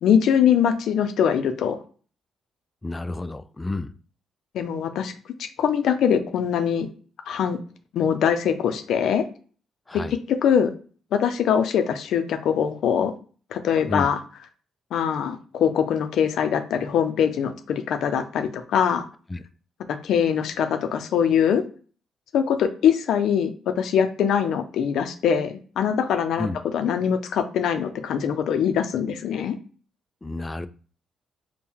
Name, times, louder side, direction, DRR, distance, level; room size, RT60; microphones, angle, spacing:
voice 1, 0.0-1.8 4.5-5.1 5.4-6.9 7.3-7.6 7.9-9.2 9.9-10.0 10.3-10.7 11.1-13.1 13.5-14.2 14.9-19.1 19.9-21.6 22.3-26.5 26.7-29.5, left 8 dB, 75° left, 0.5 m, -22 dB
voice 2, 2.8-3.9 9.9-10.1 13.8-14.1 19.3-19.4 26.4-26.6 30.2-30.7, left 2 dB, 20° left, 0.3 m, -30 dB
4.4 x 2.2 x 3.5 m
cardioid pair, 90°, 0 cm